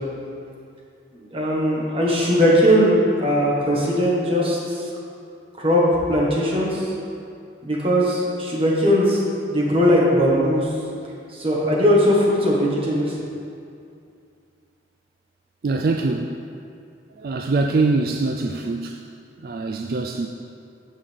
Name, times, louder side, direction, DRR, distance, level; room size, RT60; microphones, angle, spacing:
voice 1, 1.1-4.9 5.6-6.9 7.6-9.2 9.5-10.7 11.3-13.1, equal, 30° right, -5 dB, 1.7 m, -19 dB
voice 2, 15.6-16.4 17.2-19.0 19.4-20.3, right 3 dB, 55° right, 2 dB, 0.4 m, -23 dB
15.0 x 5.5 x 3.6 m, 2.5 s
head